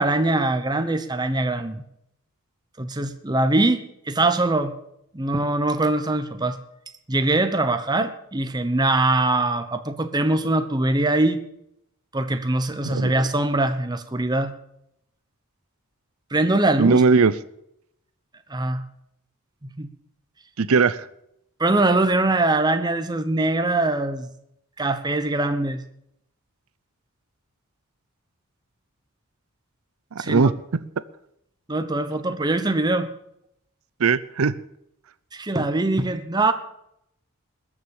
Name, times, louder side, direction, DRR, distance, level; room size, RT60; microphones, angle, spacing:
voice 1, 0.0-1.8 2.8-4.7 5.1-6.6 7.1-11.4 12.1-14.5 16.3-17.0 18.5-18.8 19.6-19.9 21.6-24.3 24.8-25.8 30.2-30.5 31.7-33.1 35.3-36.5, right 2 dB, 20° right, 0.9 m, -22 dB
voice 2, 16.8-17.3 20.6-21.0 30.1-30.5 34.0-34.5, right 4 dB, 70° right, 0.6 m, -18 dB
20.5 x 7.3 x 7.1 m
head